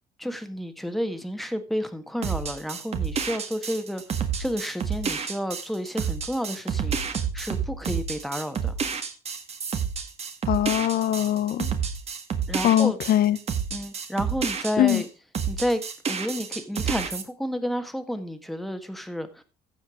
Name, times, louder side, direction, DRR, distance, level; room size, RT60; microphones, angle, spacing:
voice 1, 0.2-8.7 12.5-13.0 13.7-15.1 15.5-15.8 16.1-19.4, equal, ahead, 1.5 m, -31 dB
sound 1, 2.2-15.1 15.3-17.2, right 6 dB, 40° right, 1.7 m, -29 dB
voice 2, 10.5-11.7 12.6-13.4 14.8-15.0, left 12 dB, 60° left, 0.7 m, -22 dB
15.0 x 5.2 x 5.0 m
cardioid pair, 110°, 17 cm